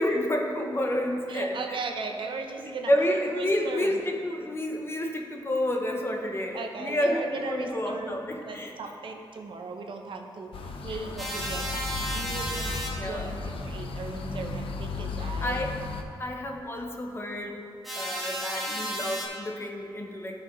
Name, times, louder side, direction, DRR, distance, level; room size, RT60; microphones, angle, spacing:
voice 1, 0.0-1.8 2.9-8.7 10.9-11.0 13.0-13.3 13.7-14.6 15.2-15.6 16.2-17.6 17.9-20.3, left 1 dB, 25° left, 2 dB, 0.8 m, -30 dB
voice 2, 1.3-2.9 3.3-4.0 6.5-15.6 18.7-18.8, right 4 dB, 65° right, 4 dB, 0.7 m, -38 dB
sound 1, 10.5-16.0, left 3 dB, 85° left, 0.6 m, -35 dB
sound 2, 11.2-12.9 17.8-19.3, equal, ahead, 1.4 m, -33 dB
14.0 x 4.9 x 3.1 m, 2.5 s
wide cardioid pair, 140°, 9 cm